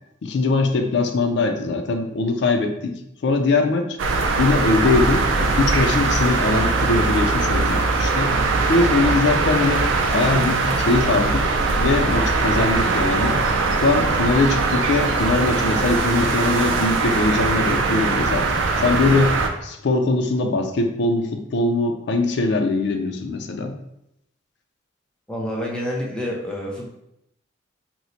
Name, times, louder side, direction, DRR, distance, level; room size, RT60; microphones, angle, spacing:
voice 1, 0.2-2.9 3.2-4.0 4.4-8.3 8.7-9.9 10.1-11.5 11.8-13.4 13.8-18.5 18.8-19.3 19.6-23.8, left 3 dB, 55° left, 5 dB, 0.4 m, -21 dB
sound 1, 4.0-19.5, right 3 dB, 75° right, 0.4 m, -21 dB
voice 2, 25.3-26.9, equal, 5° left, -3 dB, 0.5 m, -28 dB
3.0 x 2.1 x 3.9 m, 0.80 s
head